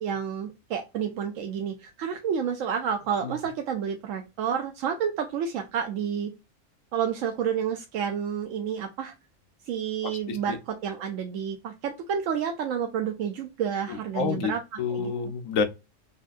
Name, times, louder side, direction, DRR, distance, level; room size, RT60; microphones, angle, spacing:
voice 1, 0.0-6.3 6.9-9.1 9.7-10.6 10.8-14.6 14.9-15.1, right 7 dB, 85° right, 1.0 m, -30 dB
voice 2, 10.0-10.6 13.9-14.5 14.8-15.6, left 5 dB, 85° left, 1.1 m, -29 dB
5.4 x 2.4 x 2.5 m
omnidirectional pair, 1.3 m